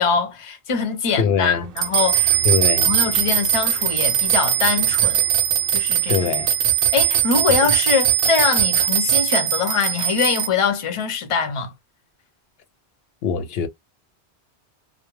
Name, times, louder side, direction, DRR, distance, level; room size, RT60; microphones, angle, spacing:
voice 1, 0.0-2.3 2.8-5.2 5.7-6.2 6.9-11.7, left 6 dB, 35° left, 0.6 m, -23 dB
voice 2, 1.2-1.7 2.4-2.9 6.1-6.5 7.6-7.7 13.2-13.7, left 6 dB, 70° left, 0.8 m, -22 dB
sound 1, 1.8-10.5, right 10 dB, 65° right, 0.7 m, -20 dB
2.2 x 2.1 x 3.1 m
omnidirectional pair, 1.1 m